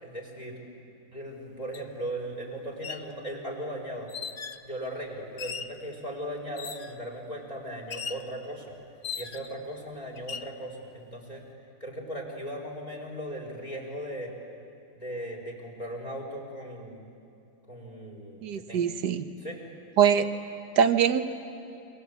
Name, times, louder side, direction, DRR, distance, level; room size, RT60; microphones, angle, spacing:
voice 1, 0.0-0.6 1.1-4.1 4.7-8.7 9.1-11.4 11.8-14.3 15.0-17.1 17.7-18.9 19.4-19.6, right 1 dB, 20° left, -1 dB, 4.6 m, -38 dB
sound 1, 1.7-1.8 2.7-3.1 4.1-4.7 5.4-5.8 6.6-7.0 7.9-8.3 9.0-9.6 10.2-10.5, left 6 dB, 50° left, 0.6 m, -38 dB
voice 2, 18.4-19.2 20.0-20.3 20.8-21.2, right 8 dB, 85° right, 9 dB, 1.7 m, -22 dB
28.5 x 24.5 x 8.3 m, 2.6 s
omnidirectional pair, 1.8 m